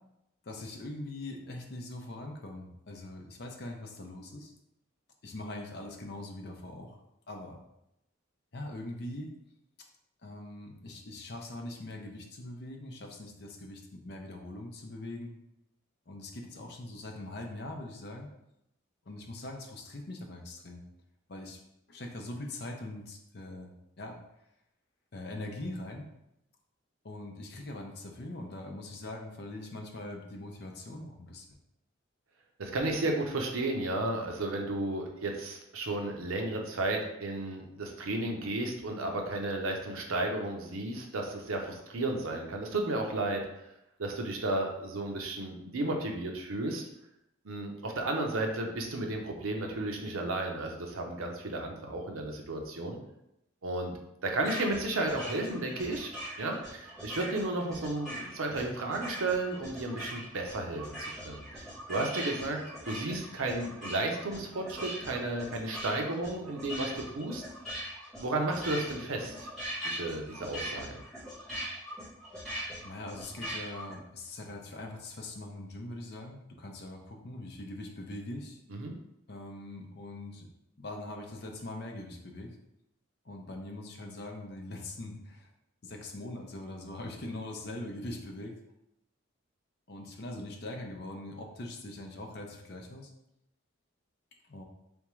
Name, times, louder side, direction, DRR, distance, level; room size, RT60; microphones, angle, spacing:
voice 1, 0.4-4.5 5.2-7.0 7.3-7.6 8.5-9.3 10.2-15.3 16.1-18.3 19.1-20.8 21.3-21.6 21.9-23.7 24.0-24.2 25.1-26.1 27.0-31.4 58.5-58.8 72.8-78.6 79.3-80.5 80.8-82.6 83.2-85.5 85.8-88.5 89.9-93.1 94.5-94.6, left 1 dB, 50° left, 2 dB, 0.6 m, -42 dB
voice 2, 32.6-43.7 44.0-46.8 47.4-53.0 53.6-53.9 54.2-56.1 56.4-67.4 68.2-69.5 69.8-71.0 78.7-78.9, right 2 dB, 85° right, 2 dB, 0.7 m, -33 dB
sound 1, 54.4-73.9, equal, 5° left, 1.4 m, -41 dB
3.6 x 3.5 x 3.1 m, 0.84 s
head